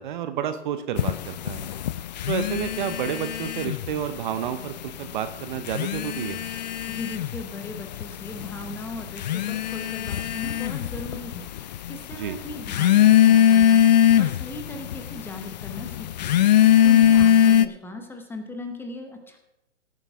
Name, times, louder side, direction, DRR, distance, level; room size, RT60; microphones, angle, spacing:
voice 1, 0.0-1.7 2.3-6.4 12.2-12.4, right 9 dB, 40° right, 10 dB, 0.8 m, -30 dB
sound 1, 1.0-4.1 4.3-5.1 5.6-17.7, left 11 dB, 35° left, 0.4 m, -21 dB
voice 2, 6.9-16.4 16.8-19.4, left 2 dB, 5° left, 5 dB, 0.9 m, -38 dB
17.0 x 8.9 x 3.5 m, 0.92 s
hypercardioid pair, 135°, 37 cm